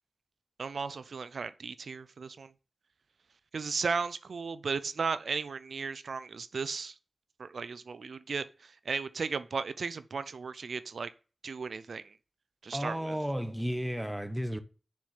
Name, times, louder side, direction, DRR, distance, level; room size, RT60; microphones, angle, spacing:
voice 1, 0.6-2.5 3.5-6.9 7.4-11.1 11.4-12.0 12.6-13.2, right 5 dB, 85° right, 0.5 m, -35 dB
voice 2, 12.7-14.6, equal, 5° right, 1.1 m, -33 dB
6.8 x 6.3 x 7.3 m
wide cardioid pair, 95°, 0 cm